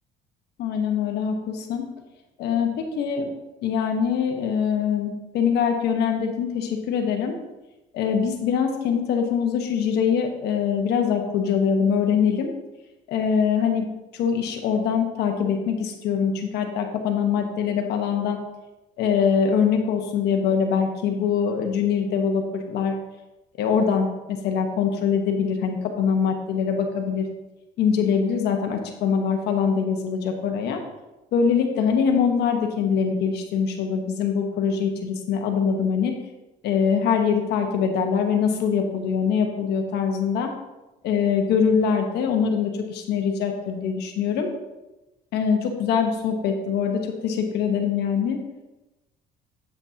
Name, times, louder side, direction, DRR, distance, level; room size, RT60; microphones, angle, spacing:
voice 1, 0.6-1.8 2.4-3.3 3.6-7.3 7.9-12.5 13.1-18.4 19.0-23.0 23.6-27.3 27.8-30.8 31.3-36.1 36.6-40.5 41.0-44.5 45.3-48.4, left 6 dB, 80° left, 4 dB, 1.3 m, -23 dB
8.0 x 8.0 x 2.9 m, 1.0 s
cardioid pair, 110°, 17 cm